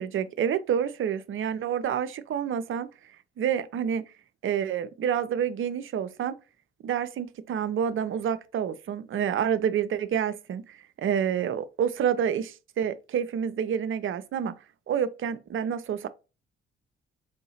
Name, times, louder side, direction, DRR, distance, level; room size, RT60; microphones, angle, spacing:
voice 1, 0.0-2.9 3.4-4.0 4.4-6.3 6.8-14.5 14.9-16.1, right 8 dB, 40° right, 0.5 m, -28 dB
4.9 x 2.7 x 2.8 m
hypercardioid pair, 45°, 31 cm